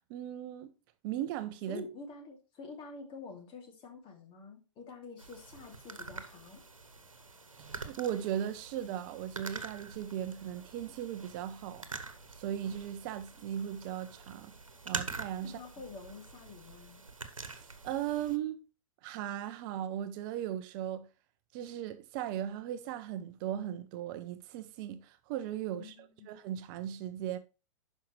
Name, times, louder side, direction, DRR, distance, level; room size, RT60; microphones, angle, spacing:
voice 1, 0.1-0.7 1.0-1.8 7.6-11.9 12.3-14.6 14.8-15.6 17.5-18.7 19.0-21.1 21.5-25.9 26.3-27.4, right 11 dB, 40° right, 0.7 m, -37 dB
voice 2, 1.7-6.6 15.4-17.1 25.8-26.3, left 4 dB, 30° left, 2.5 m, -48 dB
sound 1, 5.2-18.4, right 3 dB, 90° right, 1.1 m, -45 dB
11.5 x 5.4 x 3.2 m
figure-of-eight pair, 105°, 17 cm